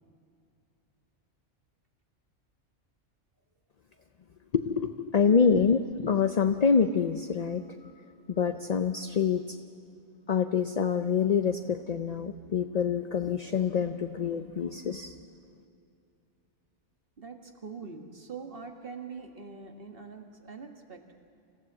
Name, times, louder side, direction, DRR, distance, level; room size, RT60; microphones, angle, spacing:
voice 1, 4.5-7.6 8.3-9.4 10.3-15.1, left 6 dB, 45° left, 7 dB, 0.6 m, -26 dB
voice 2, 17.2-21.1, right 5 dB, 50° right, 3 dB, 1.9 m, -43 dB
26.5 x 15.5 x 7.4 m, 2.5 s
omnidirectional pair, 1.2 m